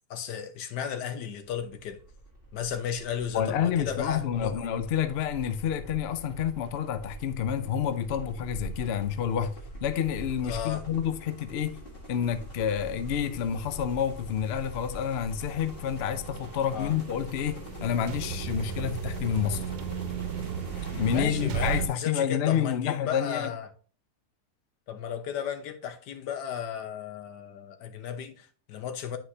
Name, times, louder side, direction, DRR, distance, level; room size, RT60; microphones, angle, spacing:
voice 1, 0.1-2.0 2.5-4.5 10.4-10.8 16.7-17.0 21.1-23.7 24.9-29.2, left 8 dB, 85° left, 1.4 m, -34 dB
sound 1, 1.5-21.2, right 1 dB, 35° left, 1.8 m, -43 dB
voice 2, 3.3-11.8 12.1-19.6 20.9-23.5, left 9 dB, 65° left, 0.6 m, -29 dB
sound 2, 14.8-21.9, right 8 dB, 85° right, 1.2 m, -35 dB
9.7 x 4.4 x 2.7 m
omnidirectional pair, 1.7 m